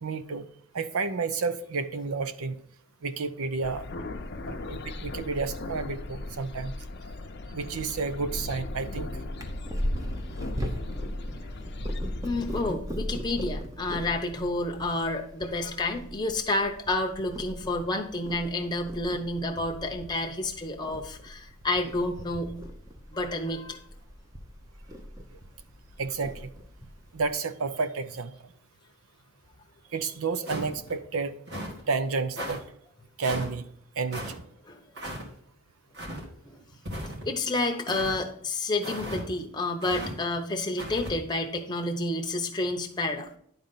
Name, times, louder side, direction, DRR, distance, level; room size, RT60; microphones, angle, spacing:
voice 1, 0.0-0.5 0.7-2.6 3.0-3.8 4.4-6.7 7.5-9.2 25.3-25.4 26.0-26.5 27.1-28.5 29.9-31.4 31.9-32.6 33.2-33.7 34.0-34.4, right 4 dB, 80° right, 12 dB, 0.6 m, -31 dB
sound 1, 3.6-12.8, left 2 dB, 50° left, 0.6 m, -37 dB
Purr, 9.3-27.3, equal, 15° right, 0.8 m, -39 dB
voice 2, 12.2-22.5 23.1-23.8 34.7-34.8 36.5-36.6 37.2-43.4, left 2 dB, 20° left, 3 dB, 0.8 m, -30 dB
sound 2, 30.4-30.9 31.5-31.8 32.4-32.6 33.2-33.5 34.1-34.3 34.9-35.2 35.9-36.2 36.8-37.3 37.9-38.2 38.8-39.2 39.8-40.1 40.8-41.1, equal, 50° right, 2.1 m, -36 dB
10.5 x 4.0 x 5.6 m, 0.67 s
head